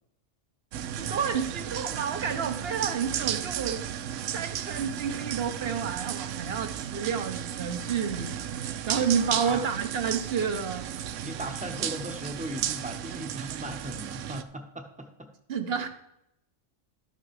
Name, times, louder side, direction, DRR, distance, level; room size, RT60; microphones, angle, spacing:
sound 1, 0.7-14.4, right 10 dB, 80° right, 0.9 m, -34 dB
voice 1, 1.0-3.8 4.3-10.8 15.5-15.9, right 7 dB, 55° right, 8 dB, 1.1 m, -30 dB
voice 2, 9.2-9.7 11.2-15.3, right 1 dB, 5° right, 5 dB, 0.9 m, -38 dB
12.5 x 5.8 x 4.8 m, 0.81 s
omnidirectional pair, 1.3 m